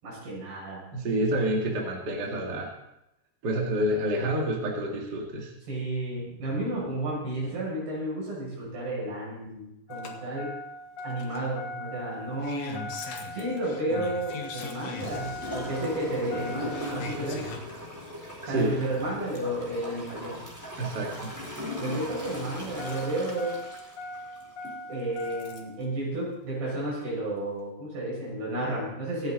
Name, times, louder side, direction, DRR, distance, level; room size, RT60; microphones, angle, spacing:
voice 1, 0.0-0.8 5.7-10.5 11.0-12.9 13.3-17.5 18.5-20.4 21.8-23.6 24.9-29.3, right 1 dB, 70° right, -5 dB, 8.5 m, -32 dB
voice 2, 0.9-2.7 3.4-5.5 18.5-18.8 20.8-21.3, right 1 dB, 35° right, 0 dB, 1.7 m, -28 dB
Engine starting, 9.9-25.8 27.1-27.2, left 2 dB, 65° left, 1.7 m, -41 dB
Gurgling / Toilet flush, 15.4-24.8 25.3-25.4, left 1 dB, 5° right, 3.2 m, -39 dB
25.0 x 8.4 x 4.0 m, 0.85 s
omnidirectional pair, 4.9 m